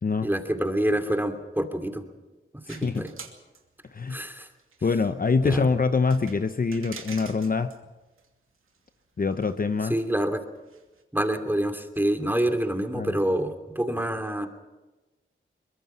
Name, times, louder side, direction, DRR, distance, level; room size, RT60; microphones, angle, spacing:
voice 1, 0.2-2.0 2.7-3.1 4.1-4.5 5.4-5.7 9.9-10.4 11.1-14.5, right 1 dB, 10° right, 5 dB, 2.8 m, -27 dB
voice 2, 2.7-3.1 3.9-4.2 4.8-7.7 9.2-9.9 12.9-13.2, left 4 dB, 40° left, 10 dB, 0.9 m, -25 dB
sound 1, 2.7-4.3 4.5-4.9 5.3-5.4 6.1-7.8 8.2-8.3 8.7-8.9 9.3-9.5 9.8-9.9 10.6-11.0, right 5 dB, 75° right, 2.7 m, -45 dB
23.5 x 21.5 x 5.7 m, 1.1 s
cardioid pair, 60°, 21 cm